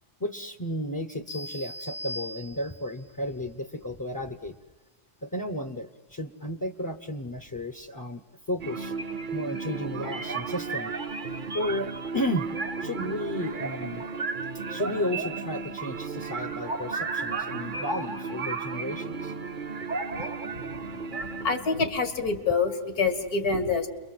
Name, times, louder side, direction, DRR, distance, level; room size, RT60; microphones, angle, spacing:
voice 1, 0.2-4.6 5.2-8.2 8.5-8.9 9.3-10.9 11.5-12.5 12.8-14.0 14.7-19.3, left 1 dB, 15° left, 8 dB, 0.7 m, -33 dB
sound 1, 1.3-3.0, left 1 dB, 90° left, 2.5 m, -39 dB
sound 2, 8.6-21.6, right 4 dB, 40° right, 1.0 m, -33 dB
voice 2, 21.4-23.9, left 4 dB, 70° left, 8 dB, 2.5 m, -26 dB
29.5 x 22.5 x 7.9 m, 1.2 s
omnidirectional pair, 1.6 m